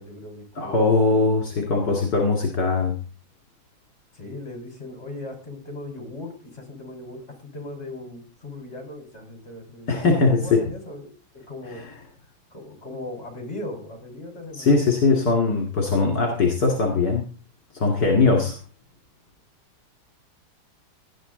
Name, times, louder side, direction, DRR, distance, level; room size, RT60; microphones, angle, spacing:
voice 1, 0.0-1.2 1.5-1.8 4.1-11.1 11.5-11.9 12.5-14.9, left 2 dB, 30° left, 3 dB, 5.3 m, -38 dB
voice 2, 0.6-3.0 9.9-10.7 11.7-11.8 14.5-17.3 17.7-18.6, left 3 dB, 55° left, 1 dB, 3.0 m, -21 dB
18.5 x 11.5 x 3.9 m, 0.37 s
omnidirectional pair, 2.3 m